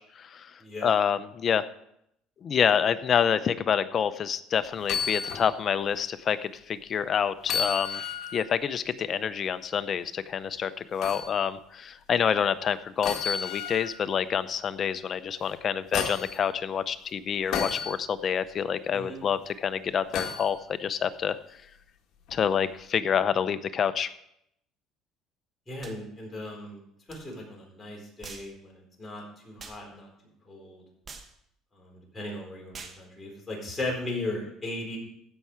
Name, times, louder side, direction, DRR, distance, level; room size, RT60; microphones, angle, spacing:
voice 1, 0.0-0.5 0.8-1.6 2.4-8.0 8.3-21.4 22.3-24.1, left 7 dB, 40° left, 13 dB, 0.6 m, -27 dB
voice 2, 0.6-0.9 18.9-19.2 25.7-26.8 27.1-30.1 30.5-30.8 31.7-35.0, left 2 dB, 20° left, -2 dB, 4.1 m, -37 dB
sound 1, 4.8-5.5 5.9-6.0 7.4-8.4 11.0-11.3 13.0-14.0 15.4-16.4 17.5-17.9 20.1-20.5 22.3-22.4, left 7 dB, 60° left, 1.8 m, -32 dB
sound 2, 25.8-26.0 27.1-27.2 28.2-28.5 29.6-29.8 31.1-31.3 32.7-33.0, right 4 dB, 35° right, 1.2 m, -44 dB
15.0 x 5.6 x 4.8 m, 0.75 s
cardioid pair, 120°, 0 cm